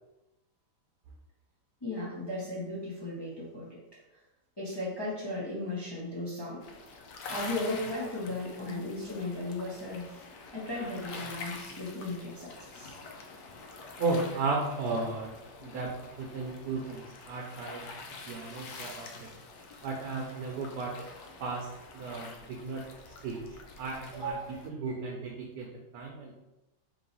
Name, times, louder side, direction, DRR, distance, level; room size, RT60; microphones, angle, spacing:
voice 1, 1.8-3.8 4.1-4.2 4.6-6.6 7.3-10.2 10.5-13.0 24.1-24.5, left 1 dB, 30° left, -6 dB, 0.5 m, -36 dB
sound 1, 6.6-24.7, left 3 dB, 75° left, 1.2 m, -46 dB
voice 2, 14.0-15.3 15.6-17.9 18.3-19.3 19.8-21.0 21.4-22.9 23.2-24.4 24.6-25.7 25.9-26.4, right 3 dB, 75° right, 0 dB, 1.1 m, -35 dB
3.4 x 3.0 x 3.9 m, 0.97 s
omnidirectional pair, 1.8 m